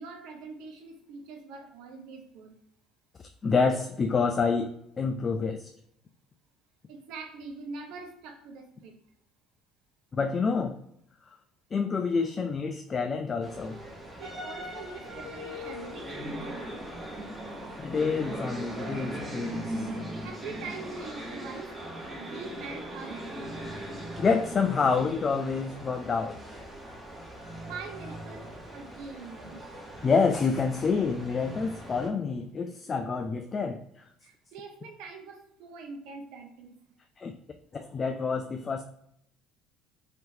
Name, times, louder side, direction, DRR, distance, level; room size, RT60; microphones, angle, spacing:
voice 1, 0.0-2.5 6.9-8.9 14.2-16.8 20.2-21.7 22.2-23.4 27.6-28.5 28.7-29.6 34.2-36.7, right 4 dB, 70° right, 3 dB, 0.6 m, -43 dB
voice 2, 3.4-4.7 5.0-5.7 10.1-10.8 11.7-13.8 17.8-19.9 24.2-26.6 30.0-33.8 37.2-37.3 37.7-38.8, left 5 dB, 35° left, 6 dB, 0.3 m, -28 dB
sound 1, 13.4-32.1, equal, 20° right, 1.0 m, -39 dB
3.3 x 2.9 x 2.7 m, 0.73 s
hypercardioid pair, 60°, 0 cm